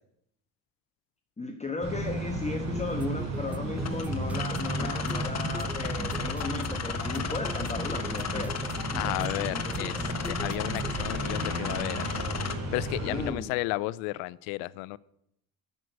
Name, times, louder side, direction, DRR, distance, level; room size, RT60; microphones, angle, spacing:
voice 1, 1.4-8.6 13.0-13.5, left 3 dB, 15° left, 4 dB, 1.2 m, -35 dB
sound 1, 1.8-13.3, right 1 dB, 35° right, 3.7 m, -33 dB
sound 2, 2.7-11.0, right 1 dB, 5° right, 0.5 m, -41 dB
sound 3, 3.8-12.6, left 7 dB, 35° left, 1.3 m, -36 dB
voice 2, 9.0-12.1 12.7-15.0, left 19 dB, 85° left, 21 dB, 0.6 m, -33 dB
11.0 x 6.5 x 8.0 m, 0.76 s
supercardioid pair, 90°, 45 cm